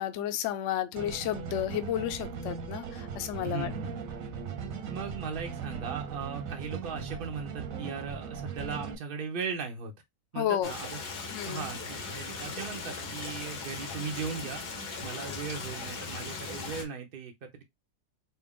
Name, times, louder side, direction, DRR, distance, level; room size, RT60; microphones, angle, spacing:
voice 1, 0.0-3.7 10.3-10.7 11.3-11.7, left 11 dB, 85° left, 0.6 m, -32 dB
sound 1, 1.0-9.0, right 6 dB, 65° right, 0.9 m, -38 dB
voice 2, 3.4-4.0 4.9-9.9 10.3-11.0 11.4-14.6 15.0-17.6, right 5 dB, 85° right, 0.4 m, -38 dB
Stream, 10.6-16.8, left 4 dB, 65° left, 1.5 m, -38 dB
4.3 x 2.0 x 3.5 m
omnidirectional pair, 1.9 m